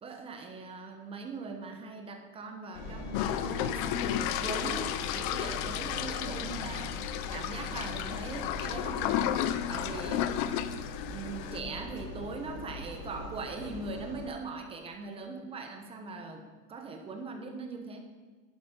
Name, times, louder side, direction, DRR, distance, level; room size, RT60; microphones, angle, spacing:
voice 1, 0.0-9.4 9.7-10.3 11.0-18.0, right 4 dB, 15° right, 4 dB, 0.9 m, -41 dB
Engine, 2.7-14.3, left 3 dB, 90° left, 2.4 m, -41 dB
sound 1, 3.1-11.6, left 11 dB, 40° left, 0.5 m, -33 dB
11.5 x 8.5 x 5.1 m, 1.3 s
supercardioid pair, 170°, 40 cm